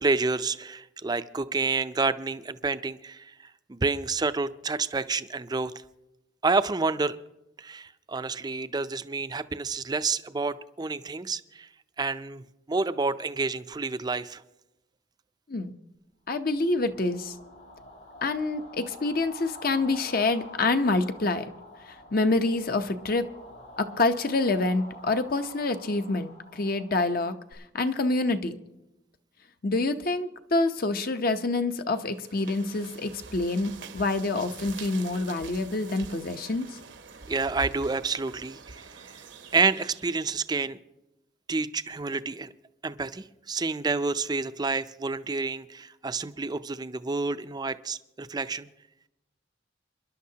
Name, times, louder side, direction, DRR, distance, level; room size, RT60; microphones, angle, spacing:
voice 1, 0.0-3.3 3.7-5.7 6.4-7.2 7.6-11.7 12.0-14.4 37.3-38.8 39.5-40.8 41.5-42.5 42.8-48.7, right 4 dB, 20° right, 12 dB, 0.4 m, -29 dB
voice 2, 16.3-17.3 18.2-21.4 21.9-23.3 23.8-28.6 29.6-36.7, left 2 dB, 50° left, 8 dB, 0.8 m, -27 dB
sound 1, 16.4-27.5, left 1 dB, 85° left, 6.9 m, -47 dB
sound 2, 32.1-40.5, right 4 dB, 75° right, 1.0 m, -45 dB
27.0 x 11.0 x 2.8 m, 0.93 s
head